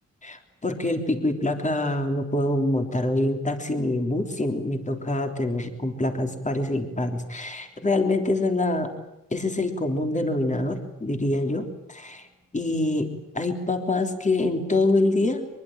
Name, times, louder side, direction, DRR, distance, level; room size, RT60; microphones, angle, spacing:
voice 1, 0.2-8.9 9.3-12.3 12.5-15.5, left 2 dB, 20° left, 5 dB, 3.6 m, -25 dB
24.5 x 23.0 x 9.0 m, 0.89 s
wide cardioid pair, 135°, 33 cm